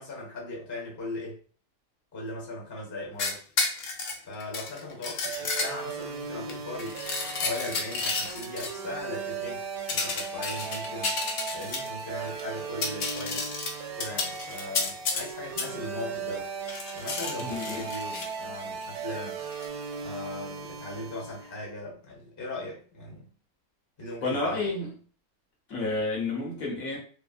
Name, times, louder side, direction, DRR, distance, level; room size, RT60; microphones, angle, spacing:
voice 1, 0.0-1.4 2.1-3.4 4.3-7.0 7.4-11.2 11.5-13.5 14.0-16.5 16.9-19.4 20.0-23.3 24.0-24.7, left 2 dB, 15° left, -3 dB, 0.8 m, -38 dB
sound 1, 3.2-6.0 6.5-8.7 9.9-12.0 12.4-12.5 12.7-15.3 15.6-15.7 16.7-18.3 19.5-19.6, left 4 dB, 80° left, 0.5 m, -32 dB
sound 2, 5.2-21.6, right 5 dB, 75° right, 1.0 m, -37 dB
voice 2, 17.4-17.8 24.2-24.9 25.7-27.0, left 2 dB, 65° left, -2 dB, 1.3 m, -30 dB
3.2 x 2.2 x 2.4 m, 0.41 s
omnidirectional pair, 1.6 m